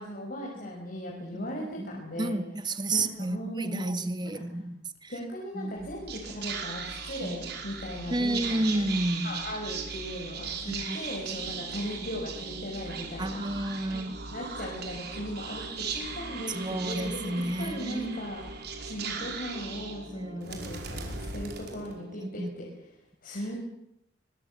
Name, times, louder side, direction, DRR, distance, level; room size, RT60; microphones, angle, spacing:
voice 1, 0.0-2.4 2.9-3.9 4.3-4.4 5.1-8.8 9.2-13.4 13.9-14.1 14.3-18.4 18.8-22.7 23.2-23.6, equal, 50° left, 5.8 m, -38 dB
voice 2, 1.8-4.7 5.0-5.1 5.6-5.7 7.2-7.4 8.1-9.4 10.7-11.0 13.2-14.2 16.5-18.3 20.1-20.4 22.2-22.5, right 1 dB, 25° right, 1.7 m, -31 dB
Whispering, 5.8-22.3, right 5 dB, 60° right, 5.2 m, -38 dB
24.5 x 22.0 x 7.6 m
head